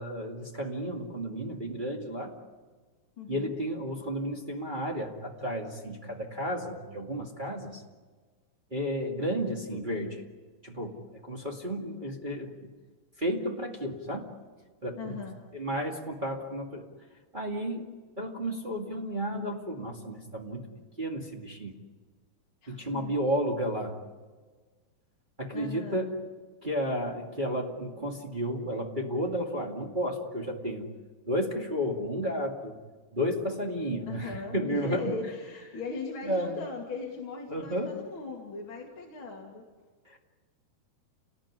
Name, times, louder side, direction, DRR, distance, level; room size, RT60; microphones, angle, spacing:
voice 1, 0.0-2.3 3.3-7.8 8.7-10.2 10.6-12.5 13.2-14.3 14.8-15.2 15.5-16.8 17.3-20.6 21.0-21.7 22.7-24.0 25.4-26.1 26.6-30.9 31.3-32.7 33.1-35.1 36.3-36.6 37.5-37.9 40.0-40.2, equal, 20° right, -1 dB, 1.5 m, -32 dB
voice 2, 3.2-3.5 9.7-9.8 14.9-15.4 22.6-23.2 25.5-26.0 34.1-39.6, left 4 dB, 35° left, -1 dB, 2.7 m, -39 dB
29.5 x 20.0 x 9.9 m, 1.4 s
omnidirectional pair, 4.7 m